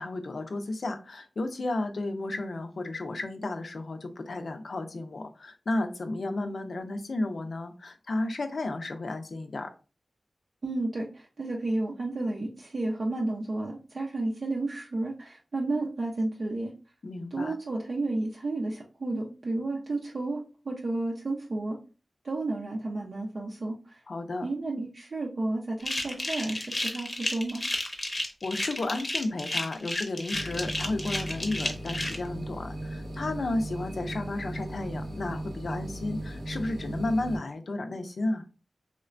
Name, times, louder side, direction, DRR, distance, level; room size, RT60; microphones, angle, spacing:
voice 1, 0.0-9.7 17.0-17.5 24.1-24.5 28.4-38.4, left 2 dB, 70° left, 7 dB, 0.4 m, -33 dB
voice 2, 10.6-16.7 17.3-21.8 22.2-24.0 24.4-27.6, right 2 dB, 65° right, -2 dB, 0.5 m, -32 dB
sound 1, 25.8-32.2, left 1 dB, 35° left, 0.6 m, -32 dB
sound 2, 30.3-37.4, right 1 dB, 85° right, 1.1 m, -37 dB
3.1 x 2.1 x 2.4 m, 0.33 s
wide cardioid pair, 70°, 0 cm